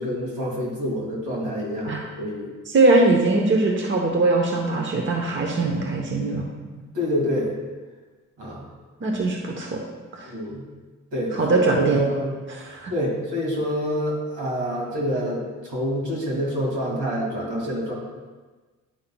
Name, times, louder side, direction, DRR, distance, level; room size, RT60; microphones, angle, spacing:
voice 1, 0.0-2.5 6.7-7.5 8.4-8.6 10.2-10.6 11.1-12.3 12.9-17.9, equal, 80° right, -2 dB, 2.2 m, -27 dB
voice 2, 2.7-6.5 9.0-9.8 10.1-10.3 11.3-12.0 12.5-12.9, right 2 dB, 40° right, 1 dB, 0.9 m, -21 dB
10.5 x 5.6 x 2.2 m, 1.3 s
cardioid pair, 90°, 30 cm